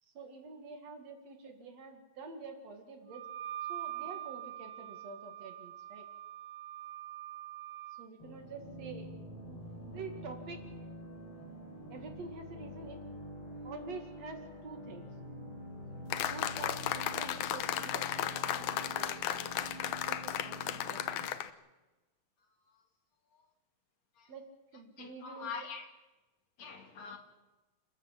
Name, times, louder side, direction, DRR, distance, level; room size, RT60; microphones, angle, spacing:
voice 1, 0.0-3.2 3.7-6.1 7.9-9.1 9.4-10.6 11.9-13.0 13.6-15.1 16.3-19.5 19.9-21.4 24.3-24.5 24.7-25.7, right 4 dB, 60° right, 3.2 m, -48 dB
Wind instrument woodwind instrument, 3.1-8.1, right 13 dB, 80° right, 2.6 m, -43 dB
sound 1, 8.2-21.3, equal, 45° left, 5.1 m, -47 dB
sound 2, 16.1-21.5, left 11 dB, 80° left, 2.4 m, -35 dB
voice 2, 25.0-25.8 26.6-27.2, left 5 dB, 65° left, 3.4 m, -43 dB
29.0 x 14.0 x 8.5 m
omnidirectional pair, 3.4 m